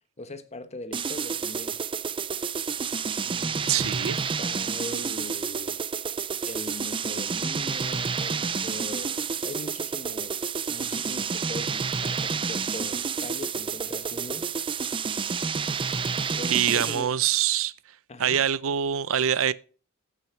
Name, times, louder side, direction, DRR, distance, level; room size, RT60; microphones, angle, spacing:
voice 1, 0.2-1.8 3.2-5.8 6.5-14.5 16.3-17.1 18.1-18.4, left 2 dB, 30° left, 1.2 m, -40 dB
sound 1, 0.9-17.1, right 6 dB, 25° right, 0.4 m, -30 dB
voice 2, 3.7-4.2 16.5-17.7 18.2-19.5, right 9 dB, 70° right, 0.6 m, -24 dB
14.5 x 6.3 x 4.5 m
head